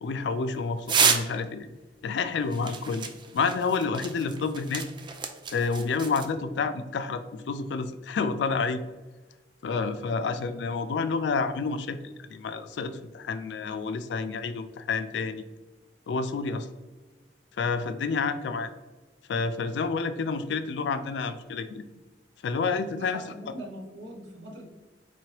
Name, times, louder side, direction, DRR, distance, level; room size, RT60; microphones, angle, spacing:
voice 1, 0.0-1.7 2.0-3.1 3.3-4.9 5.5-8.9 9.6-15.5 16.1-16.7 17.6-18.7 19.3-21.8 22.4-23.2, left 4 dB, 70° left, 10 dB, 0.3 m, -29 dB
sound 1, 0.9-1.4 2.5-6.3, right 5 dB, 25° right, 0.3 m, -29 dB
voice 2, 23.0-24.7, right 1 dB, 80° right, 1 dB, 0.8 m, -41 dB
4.2 x 3.1 x 2.9 m, 1.2 s
head